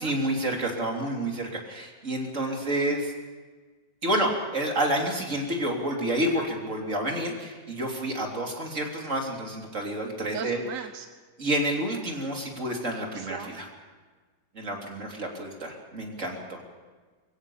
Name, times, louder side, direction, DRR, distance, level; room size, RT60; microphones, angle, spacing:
voice 1, 0.0-3.1 4.0-10.6 11.4-13.7 14.5-16.6, right 1 dB, 40° right, 1 dB, 3.6 m, -29 dB
voice 2, 10.3-11.0 13.1-13.6, right 8 dB, 55° right, 8 dB, 1.1 m, -37 dB
23.0 x 16.0 x 7.1 m, 1.4 s
omnidirectional pair, 2.1 m